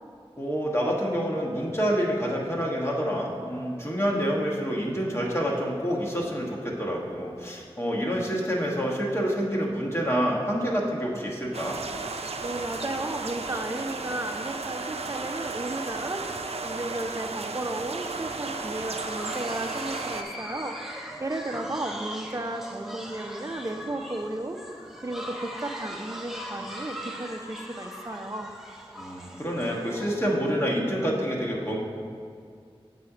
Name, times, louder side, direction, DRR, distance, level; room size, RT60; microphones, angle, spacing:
voice 1, 0.4-11.8 29.0-31.8, equal, 25° left, -3 dB, 1.3 m, -27 dB
sound 1, 11.5-20.2, right 3 dB, 85° right, 0.4 m, -34 dB
voice 2, 12.4-24.6 25.0-28.5, right 1 dB, 30° right, 5 dB, 0.6 m, -34 dB
sound 2, 19.0-30.3, equal, 5° right, 0.9 m, -40 dB
7.6 x 4.2 x 4.8 m, 2.3 s
wide cardioid pair, 45°, 10 cm